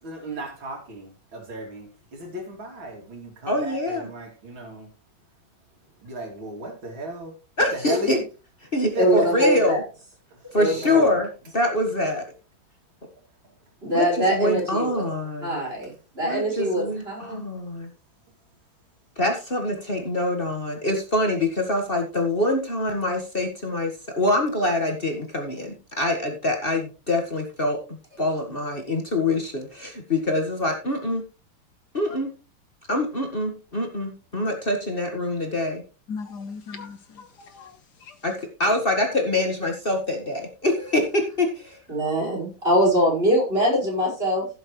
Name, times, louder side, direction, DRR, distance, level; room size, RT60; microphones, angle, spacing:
voice 1, 0.0-4.9 6.0-8.2 9.0-9.3 10.3-11.2, right 1 dB, 90° right, 3.6 m, -35 dB
voice 2, 3.5-4.1 7.6-8.2 8.7-9.8 10.5-11.3 11.5-12.2 13.9-15.6 16.2-17.9 19.2-31.2 31.9-32.3 32.9-35.8 38.2-41.8, left 1 dB, 30° left, 1.8 m, -25 dB
voice 3, 8.9-9.8 10.6-11.1 13.8-14.9 15.4-17.5 41.9-44.5, equal, 30° right, 5.6 m, -23 dB
voice 4, 36.1-38.2, left 5 dB, 60° left, 1.5 m, -38 dB
16.0 x 7.3 x 3.2 m
omnidirectional pair, 2.1 m